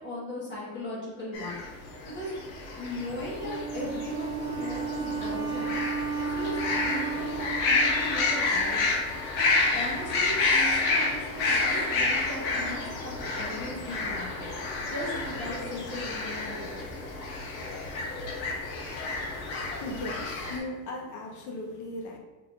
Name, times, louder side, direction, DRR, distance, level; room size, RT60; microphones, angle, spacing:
voice 1, 0.0-1.6 2.1-2.3 2.8-5.8 6.1-8.8 9.3-14.5 14.8-16.9, left 1 dB, 25° left, -5 dB, 1.4 m, -38 dB
sound 1, 1.3-20.6, left 3 dB, 75° left, 1.1 m, -29 dB
Wind instrument woodwind instrument, 3.4-8.8, right 5 dB, 90° right, 1.0 m, -34 dB
voice 2, 19.8-22.2, left 1 dB, 45° left, 1 dB, 0.9 m, -37 dB
4.9 x 3.2 x 2.5 m, 1.2 s
cardioid pair, 130°, 41 cm